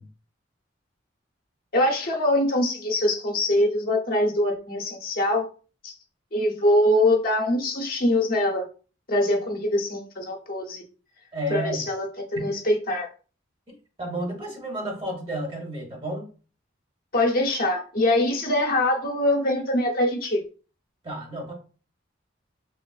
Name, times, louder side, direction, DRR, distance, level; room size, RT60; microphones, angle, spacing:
voice 1, 1.7-5.4 5.8-5.9 6.3-8.6 9.1-10.8 11.5-12.0 12.4-13.1 17.1-20.4, left 1 dB, 50° left, 1 dB, 0.7 m, -23 dB
voice 2, 11.3-11.9 12.3-12.5 13.7-16.3 21.0-21.5, right 1 dB, 30° right, 1 dB, 1.0 m, -31 dB
3.1 x 3.0 x 2.4 m, 0.37 s
head